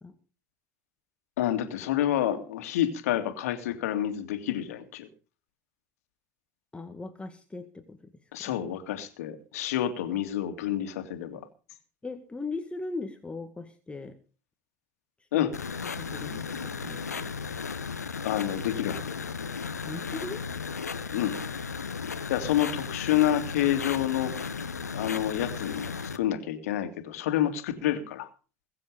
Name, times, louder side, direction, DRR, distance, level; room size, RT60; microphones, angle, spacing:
voice 1, 1.4-5.1 8.3-11.4 15.3-15.5 18.2-19.2 21.1-21.4 22.3-24.3 24.9-28.3, left 11 dB, 70° left, 7 dB, 2.5 m, -28 dB
voice 2, 6.7-8.1 12.0-14.2 15.3-15.5 16.0-17.3 19.8-20.4, left 3 dB, 15° left, 6 dB, 1.9 m, -38 dB
sound 1, 15.5-26.2, left 5 dB, 90° left, 1.1 m, -35 dB
22.0 x 7.7 x 5.2 m, 0.37 s
hypercardioid pair, 75°, 8 cm